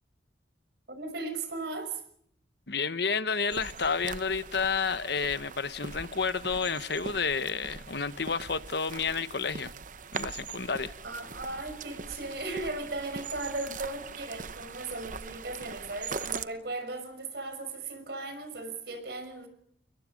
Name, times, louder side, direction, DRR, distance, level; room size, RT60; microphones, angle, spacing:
voice 1, 0.9-2.0 11.0-19.5, right 2 dB, 60° right, 6.0 m, -37 dB
voice 2, 2.7-9.7 10.1-10.9, left 5 dB, 60° left, 1.1 m, -30 dB
sound 1, 3.5-16.5, right 5 dB, 45° right, 0.9 m, -41 dB
29.5 x 22.5 x 5.2 m
head